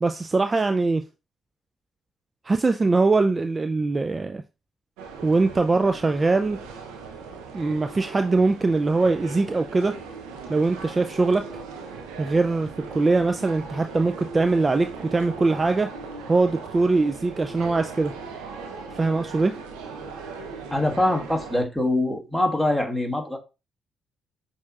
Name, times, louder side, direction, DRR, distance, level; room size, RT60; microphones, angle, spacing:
voice 1, 0.0-1.0 2.5-4.4 5.2-6.6 7.5-10.0 10.5-11.5 12.2-15.9 16.3-18.1 18.9-19.5, right 3 dB, 30° right, 0.3 m, -22 dB
sound 1, 5.0-21.6, right 4 dB, 85° right, 0.7 m, -39 dB
voice 2, 20.7-23.4, left 1 dB, ahead, 1.4 m, -23 dB
7.1 x 2.8 x 2.4 m
hypercardioid pair, 50°, 0 cm